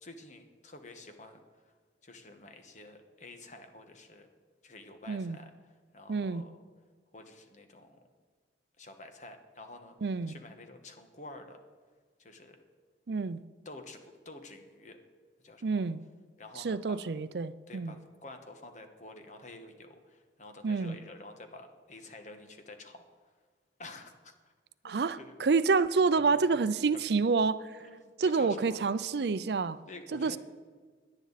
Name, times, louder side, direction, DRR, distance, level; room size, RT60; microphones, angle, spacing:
voice 1, 0.0-1.7 2.0-4.3 4.6-5.5 5.9-6.6 7.1-8.0 8.8-11.6 12.2-12.6 13.6-15.0 15.4-15.8 16.4-17.0 17.7-23.0 23.8-24.5 24.8-25.3 26.9-27.0 27.8-28.8 29.9-30.4, left 2 dB, 45° left, 6 dB, 1.3 m, -49 dB
voice 2, 5.1-5.4 6.1-6.4 10.0-10.3 13.1-13.4 15.6-16.0 16.6-17.9 20.6-21.0 24.8-27.8 28.2-29.8 30.1-30.4, right 4 dB, 65° right, 15 dB, 0.5 m, -28 dB
17.5 x 10.5 x 4.1 m, 1.5 s
head